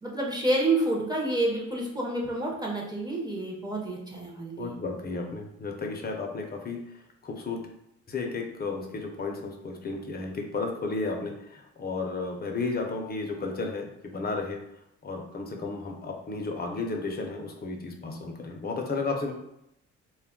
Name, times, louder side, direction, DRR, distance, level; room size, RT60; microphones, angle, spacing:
voice 1, 0.0-4.7, right 2 dB, 15° right, -2 dB, 0.6 m, -28 dB
voice 2, 4.6-6.8 7.2-7.6 8.1-14.6 15.0-19.3, left 3 dB, 30° left, 2 dB, 0.5 m, -33 dB
2.2 x 2.1 x 3.6 m, 0.81 s
cardioid pair, 90°, 30 cm